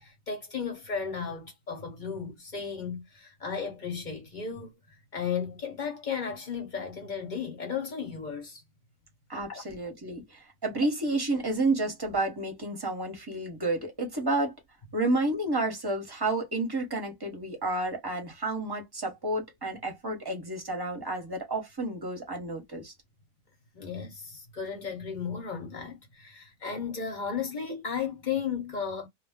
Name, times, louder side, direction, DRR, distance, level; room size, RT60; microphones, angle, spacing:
voice 1, 0.0-8.6 9.5-9.6 23.7-29.1, left 6 dB, 40° left, 0.9 m, -35 dB
voice 2, 9.3-14.5 14.9-22.9, right 2 dB, 20° right, 0.9 m, -30 dB
2.3 x 2.2 x 3.5 m
omnidirectional pair, 1.4 m